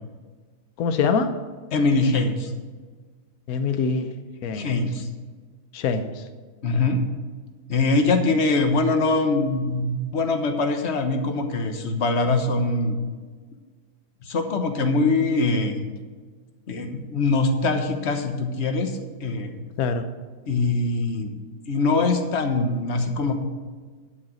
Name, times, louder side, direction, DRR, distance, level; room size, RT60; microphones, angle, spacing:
voice 1, 0.8-1.3 3.5-4.1 4.4-4.7 5.7-6.1 19.8-20.0, left 5 dB, 70° left, 8 dB, 1.2 m, -24 dB
voice 2, 1.7-2.5 4.5-5.1 6.6-7.0 7.7-13.0 14.2-15.9 16.7-18.9 19.2-19.6 20.5-21.3 21.7-23.4, left 3 dB, 45° left, 5 dB, 1.4 m, -23 dB
12.0 x 6.0 x 7.8 m, 1.4 s
omnidirectional pair, 1.7 m